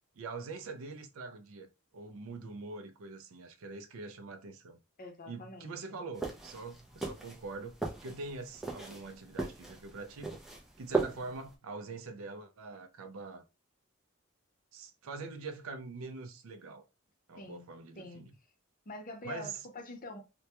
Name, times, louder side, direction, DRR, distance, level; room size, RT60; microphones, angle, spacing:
voice 1, 0.2-4.8 5.3-7.8 8.0-10.4 10.8-13.4 14.7-16.9 17.3-18.3 19.2-19.6, right 3 dB, 70° right, 0.4 m, -44 dB
voice 2, 5.0-6.0 17.3-17.6 18.0-18.3 18.9-20.2, left 2 dB, 40° left, 0.6 m, -45 dB
sound 1, 6.2-11.5, right 4 dB, ahead, 0.4 m, -38 dB
2.2 x 2.2 x 2.8 m
head